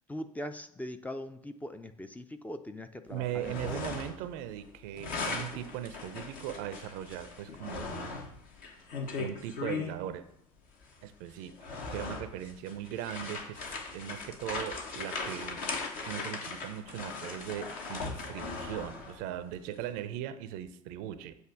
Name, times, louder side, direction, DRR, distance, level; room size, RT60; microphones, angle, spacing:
voice 1, 0.0-3.8, left 1 dB, 10° left, 8 dB, 0.5 m, -41 dB
voice 2, 3.1-8.2 9.2-10.3 11.0-11.5 11.9-15.6 16.1-21.4, right 11 dB, 60° right, 12 dB, 0.5 m, -39 dB
sound 1, 3.2-4.3 4.6-10.0 10.8-10.9 11.4-19.2, left 4 dB, 55° left, 1.2 m, -39 dB
7.9 x 2.7 x 5.8 m, 0.74 s
figure-of-eight pair, 65°, 17 cm